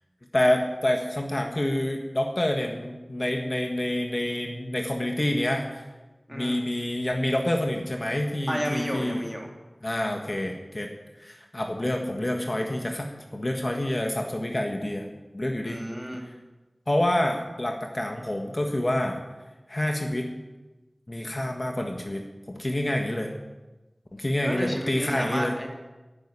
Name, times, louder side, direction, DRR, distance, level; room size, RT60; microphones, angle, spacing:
voice 1, 0.3-5.8 6.3-9.2 9.8-10.9 11.2-15.1 15.3-15.8 16.9-19.2 19.7-20.3 21.1-23.3 24.1-25.5, left 1 dB, 40° left, 2 dB, 1.6 m, -27 dB
voice 2, 6.3-6.6 8.5-9.5 15.6-16.2 24.4-25.7, equal, 10° right, 1 dB, 2.8 m, -32 dB
10.5 x 9.5 x 9.9 m, 1.1 s
wide cardioid pair, 55°, 0 cm